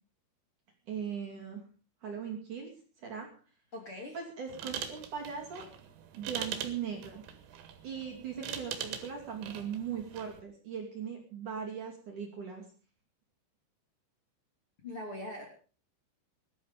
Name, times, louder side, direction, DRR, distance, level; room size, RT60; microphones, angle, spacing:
voice 1, 0.9-1.6 2.0-2.7 3.0-3.3 4.1-5.7 6.1-7.2 7.8-12.7, right 7 dB, 45° right, 2 dB, 3.5 m, -39 dB
voice 2, 3.7-4.2 14.8-15.5, left 1 dB, 30° left, 1 dB, 3.3 m, -41 dB
sound 1, 4.5-10.4, right 9 dB, 70° right, 4.1 m, -42 dB
19.5 x 12.0 x 5.1 m, 0.39 s
omnidirectional pair, 5.8 m